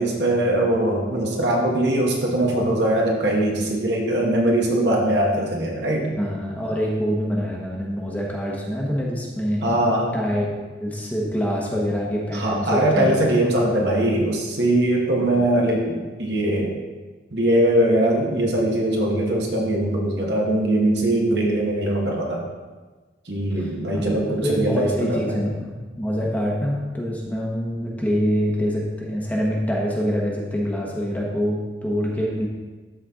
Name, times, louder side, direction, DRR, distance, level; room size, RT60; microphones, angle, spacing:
voice 1, 0.0-6.1 9.6-10.1 12.3-16.7 17.3-22.4 23.3-25.5, right 1 dB, 60° right, -2 dB, 1.5 m, -21 dB
voice 2, 6.2-9.8 10.1-10.5 10.8-13.2 15.2-15.5 23.6-23.7 23.9-32.5, equal, 10° left, -3 dB, 1.1 m, -25 dB
13.0 x 4.3 x 3.7 m, 1.3 s
head